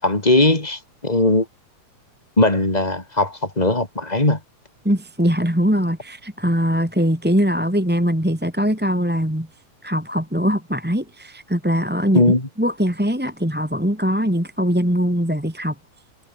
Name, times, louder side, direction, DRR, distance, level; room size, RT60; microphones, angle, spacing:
voice 1, 0.0-1.5 2.4-4.4 12.1-12.5, left 2 dB, 15° left, 4.1 m, -18 dB
voice 2, 4.8-9.5 9.8-12.2 12.6-15.7, equal, 5° right, 2.6 m, -21 dB
omnidirectional pair, 3.3 m